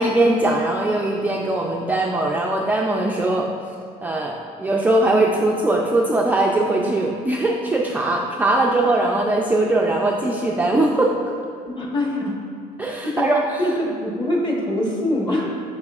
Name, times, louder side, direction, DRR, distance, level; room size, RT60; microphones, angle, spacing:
voice 1, 0.0-3.5 4.0-11.1 12.8-13.4, right 2 dB, 10° right, -1 dB, 0.3 m, -20 dB
voice 2, 11.6-12.4 13.0-13.3 13.6-15.5, left 1 dB, 25° left, -2 dB, 1.4 m, -23 dB
10.0 x 4.2 x 2.4 m, 2.5 s
cardioid pair, 110°, 17 cm